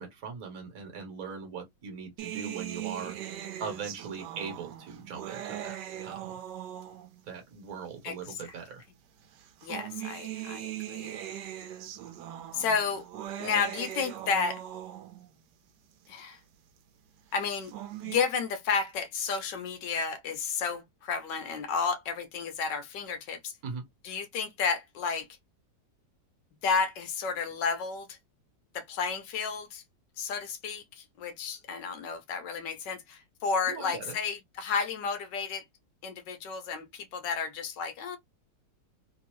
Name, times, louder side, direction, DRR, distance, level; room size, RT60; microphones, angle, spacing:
voice 1, 0.0-5.7 6.0-6.4 7.3-8.8 23.6-23.8 33.7-34.1, right 5 dB, 55° right, 1.5 m, -40 dB
sound 1, 2.2-7.3 8.2-8.3 9.4-15.3 17.4-18.2, right 11 dB, 75° right, 1.3 m, -40 dB
voice 2, 8.0-8.4 9.6-11.2 12.5-13.0 13.4-14.6 16.1-16.4 17.3-17.7 18.0-23.5 24.0-25.3 26.6-28.2 28.7-29.8 30.2-35.6 36.0-38.2, left 5 dB, 75° left, 1.4 m, -32 dB
3.5 x 2.7 x 3.0 m
omnidirectional pair, 1.9 m